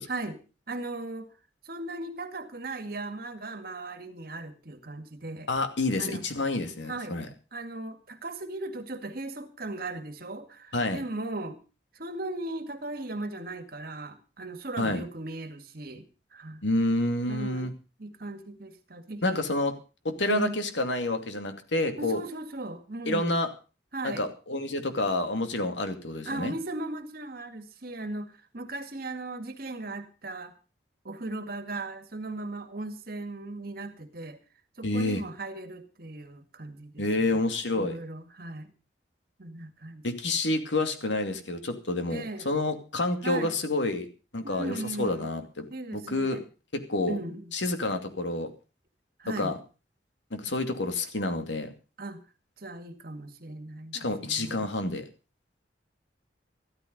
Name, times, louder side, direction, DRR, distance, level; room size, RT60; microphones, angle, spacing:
voice 1, 0.1-0.4 0.7-1.3 1.6-5.5 6.0-6.2 6.9-7.2 7.5-11.6 12.0-16.1 16.3-16.6 17.3-17.7 18.0-19.4 20.3-20.6 22.0-23.5 23.9-24.2 26.3-30.5 31.0-34.4 34.8-37.4 37.8-38.7 39.4-40.4 42.1-42.5 43.2-43.6 44.4-45.3 45.7-46.4 47.1-47.5 49.2-49.6 52.0-52.2 52.6-54.0 54.2-54.7, right 2 dB, 55° right, 9 dB, 2.1 m, -37 dB
voice 2, 5.5-7.3 10.7-11.0 14.8-15.0 16.6-17.7 19.2-19.7 20.0-22.2 23.1-23.5 24.0-26.5 34.8-35.2 37.0-38.0 40.0-44.1 44.3-45.7 45.9-46.4 46.7-47.2 47.5-48.5 49.3-49.6 50.3-51.7 53.9-55.0, left 2 dB, 80° left, 7 dB, 2.5 m, -28 dB
14.0 x 13.5 x 5.4 m, 0.33 s
head